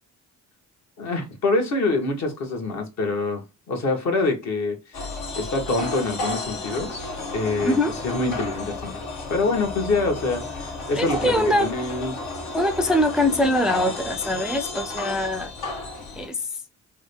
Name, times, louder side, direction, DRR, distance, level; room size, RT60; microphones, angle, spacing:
voice 1, 1.0-5.1 5.4-7.8 8.0-9.0 9.3-12.2, left 3 dB, 65° left, 1.3 m, -26 dB
sound 1, 4.9-16.3, left 2 dB, 85° left, 1.6 m, -32 dB
voice 2, 7.6-8.0 10.9-11.7 12.5-15.5 16.1-16.5, left 1 dB, ahead, 0.4 m, -23 dB
3.7 x 2.3 x 3.2 m
cardioid pair, 90°, 30 cm